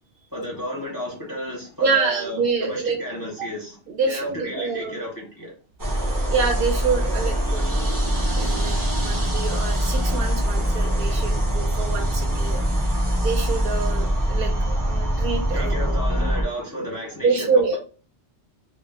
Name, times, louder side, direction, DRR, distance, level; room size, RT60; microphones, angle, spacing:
voice 1, 0.3-3.7 4.1-5.5 15.5-17.8, equal, 25° left, -3 dB, 0.5 m, -32 dB
voice 2, 1.8-3.0 3.4-3.5 3.9-5.0 6.3-12.6 13.2-15.9 17.2-17.8, right 4 dB, 65° right, 3 dB, 0.7 m, -26 dB
sound 1, 5.8-16.4, right 1 dB, 30° right, 0.4 m, -23 dB
2.2 x 2.0 x 3.3 m, 0.36 s
omnidirectional pair, 1.2 m